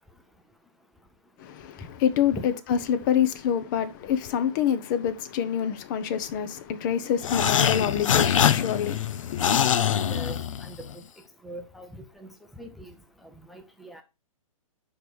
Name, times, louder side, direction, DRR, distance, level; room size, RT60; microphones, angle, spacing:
voice 1, 1.4-10.0, left 9 dB, 35° left, 0.8 m, -27 dB
sound 1, 7.2-10.9, left 9 dB, 65° left, 0.6 m, -24 dB
voice 2, 9.9-10.9 11.4-12.3 12.6-12.9 13.2-14.0, right 1 dB, ahead, 0.6 m, -41 dB
5.1 x 4.8 x 6.2 m
hypercardioid pair, 140°, 18 cm